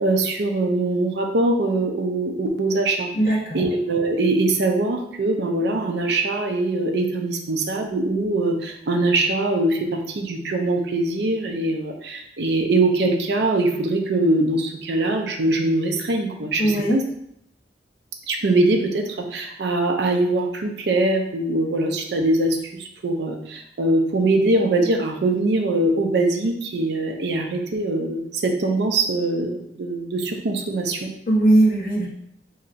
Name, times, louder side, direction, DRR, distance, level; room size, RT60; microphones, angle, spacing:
voice 1, 0.0-3.1 3.5-17.0 18.3-31.1, right 2 dB, 70° right, 3 dB, 0.5 m, -22 dB
voice 2, 3.1-3.7 16.6-17.0 31.3-32.1, right 1 dB, 55° left, -4 dB, 1.0 m, -19 dB
4.3 x 2.8 x 2.5 m, 0.73 s
head